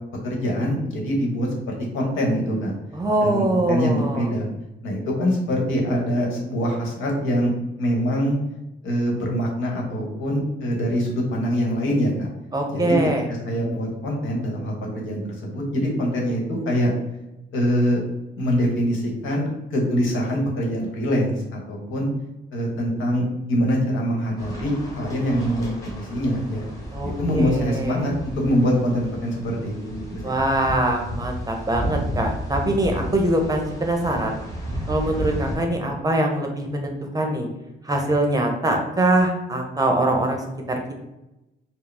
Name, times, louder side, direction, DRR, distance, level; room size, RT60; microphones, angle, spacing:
voice 1, 0.2-2.7 3.2-4.5 4.8-7.5 7.8-8.4 8.8-12.3 12.7-13.0 13.4-16.9 17.5-18.0 18.4-22.1 22.5-26.6 27.0-30.5, equal, 80° left, -1 dB, 1.1 m, -24 dB
voice 2, 2.9-4.3 12.5-13.3 26.9-28.0 30.2-34.4 34.9-37.5 37.8-40.8, right 1 dB, 20° right, 2 dB, 0.7 m, -23 dB
sound 1, 24.4-35.6, equal, 15° left, 1.3 m, -33 dB
4.6 x 2.0 x 3.3 m, 0.96 s
cardioid pair, 90°, 20 cm